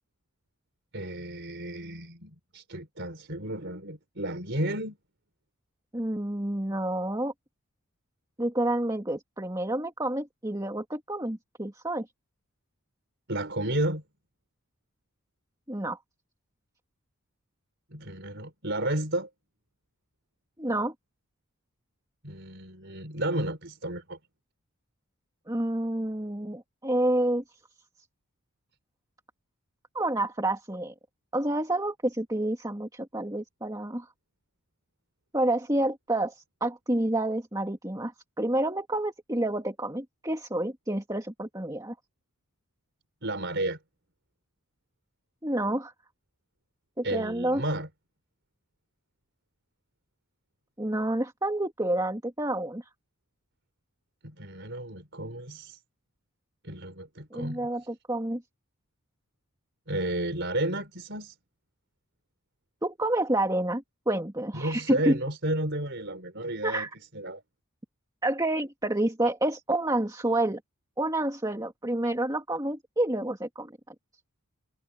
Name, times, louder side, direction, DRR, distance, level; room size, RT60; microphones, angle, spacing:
voice 1, 0.9-5.0 13.3-14.0 17.9-19.3 22.2-24.2 43.2-43.8 47.0-47.9 54.2-55.8 56.6-57.7 59.9-61.3 64.5-66.9 67.1-67.4, right 1 dB, 50° right, 4.8 m, -32 dB
voice 2, 5.9-7.3 8.4-12.1 15.7-16.0 20.6-20.9 25.5-27.4 29.9-30.9 31.3-34.1 35.3-38.1 38.4-41.9 45.4-45.9 47.0-47.6 50.8-52.9 57.3-58.4 62.8-65.2 66.6-66.9 68.2-70.6 71.0-73.7, right 1 dB, 15° right, 2.3 m, -29 dB
head